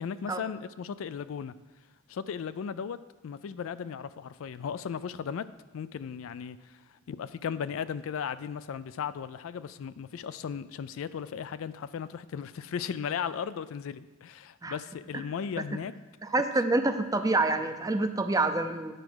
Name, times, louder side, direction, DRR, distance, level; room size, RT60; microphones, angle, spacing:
voice 1, 0.0-1.5 2.1-3.0 3.2-5.5 5.7-6.8 7.1-15.9, left 7 dB, 75° left, 14 dB, 0.3 m, -36 dB
voice 2, 16.2-18.9, right 2 dB, 20° right, 7 dB, 0.5 m, -27 dB
9.1 x 4.8 x 6.1 m, 1.1 s
head